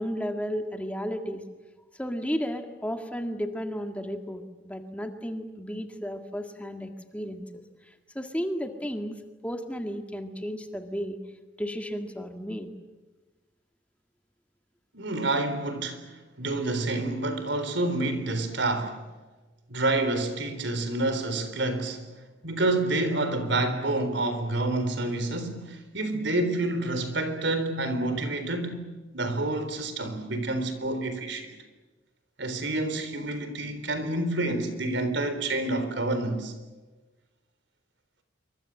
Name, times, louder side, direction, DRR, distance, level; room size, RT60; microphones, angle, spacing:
voice 1, 0.0-1.4 2.0-9.2 9.4-11.2 11.6-12.7, equal, 5° left, 1.8 m, -33 dB
voice 2, 14.9-16.0 16.4-19.0 19.7-22.0 22.4-28.9 29.1-31.6 32.4-36.5, right 2 dB, 65° right, 3.9 m, -28 dB
27.0 x 24.5 x 7.7 m
head